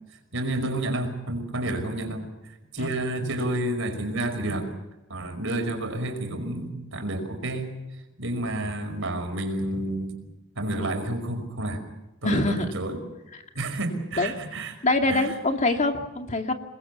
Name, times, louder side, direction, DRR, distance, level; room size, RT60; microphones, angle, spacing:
voice 1, 0.3-4.7 5.1-7.8 8.2-10.2 10.6-11.8 12.2-13.0 13.5-14.7 15.1-15.3, right 1 dB, 65° right, 6 dB, 5.4 m, -30 dB
voice 2, 12.2-12.7 14.2-14.3 14.8-16.5, left 2 dB, 35° left, 5 dB, 2.3 m, -24 dB
29.5 x 21.0 x 7.0 m, 1.0 s
head